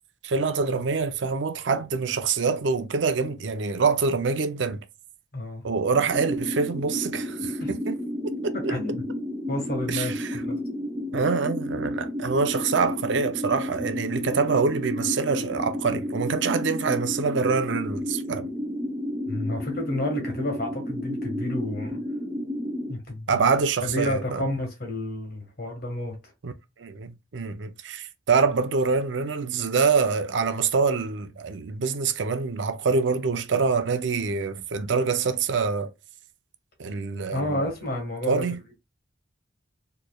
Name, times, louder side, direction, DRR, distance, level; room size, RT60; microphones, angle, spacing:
voice 1, 0.2-4.8 5.6-8.0 8.2-8.8 9.9-10.4 11.1-18.5 23.3-24.5 26.4-26.5 26.8-35.9 36.8-37.6 38.3-38.6, right 5 dB, 65° right, 0.5 m, -25 dB
voice 2, 5.3-5.6 7.6-7.7 8.7-9.0 9.5-10.6 19.3-22.0 22.9-23.4 23.8-26.2 37.3-38.4, left 1 dB, 50° left, 1.5 m, -30 dB
sound 1, 6.1-22.9, left 1 dB, 10° right, 0.6 m, -31 dB
4.3 x 3.1 x 2.3 m
head